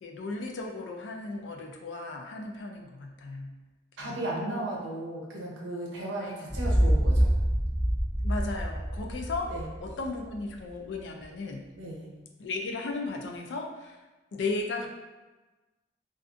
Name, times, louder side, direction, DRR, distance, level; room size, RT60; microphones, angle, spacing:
voice 1, 0.0-3.5 4.0-4.2 4.5-4.7 6.2-6.4 8.2-9.5 9.8-11.6 12.4-13.9 14.3-14.9, left 3 dB, 75° left, 2 dB, 0.3 m, -35 dB
voice 2, 4.0-7.3 9.5-9.7 11.7-12.1, right 1 dB, 85° right, -3 dB, 0.7 m, -35 dB
sound 1, 6.5-10.4, equal, 5° left, 0.6 m, -26 dB
2.4 x 2.4 x 2.4 m, 1.2 s
head